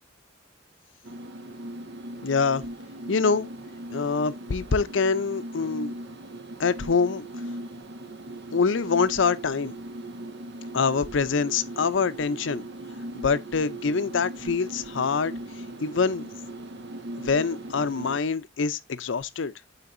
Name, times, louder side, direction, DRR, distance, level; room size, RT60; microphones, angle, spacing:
sound 1, 1.0-18.2, right 1 dB, 60° right, 0.8 m, -39 dB
voice 1, 2.2-2.6 3.1-3.5 3.9-5.9 6.6-7.3 8.5-9.7 10.7-12.6 13.1-15.3 15.8-16.3 17.2-19.5, left 5 dB, 80° left, 0.6 m, -25 dB
9.7 x 4.0 x 2.6 m
head